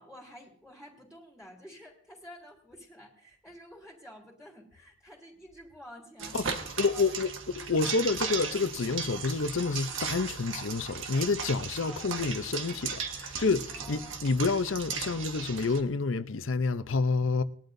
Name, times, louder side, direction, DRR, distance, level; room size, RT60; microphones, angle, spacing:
voice 1, 0.0-6.6 6.9-7.3 7.8-8.0 11.8-12.0 13.7-14.2, equal, 5° right, 3.1 m, -50 dB
sound 1, 6.2-15.8, right 6 dB, 75° right, 1.5 m, -37 dB
voice 2, 6.8-17.4, left 4 dB, 70° left, 0.7 m, -29 dB
20.5 x 12.0 x 2.7 m
head